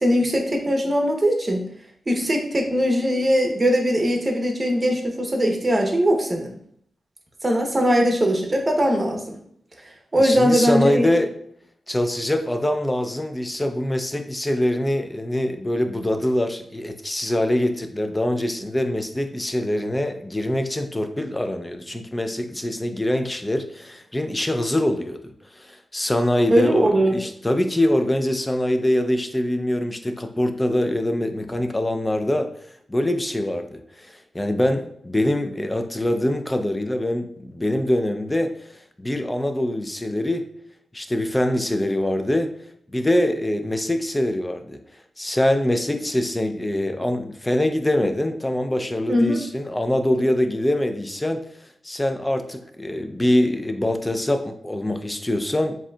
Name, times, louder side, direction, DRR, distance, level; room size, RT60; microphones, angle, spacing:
voice 1, 0.0-1.6 2.1-6.5 7.4-9.4 10.1-11.1 26.5-27.2 49.1-49.4, equal, 25° right, 2 dB, 0.8 m, -20 dB
voice 2, 10.2-11.3 11.9-32.5 32.9-38.5 39.0-40.5 40.9-42.5 42.9-44.8 45.2-51.4 51.8-55.8, left 1 dB, 15° left, 7 dB, 0.4 m, -24 dB
7.3 x 2.7 x 2.3 m, 0.68 s
wide cardioid pair, 110°, 0 cm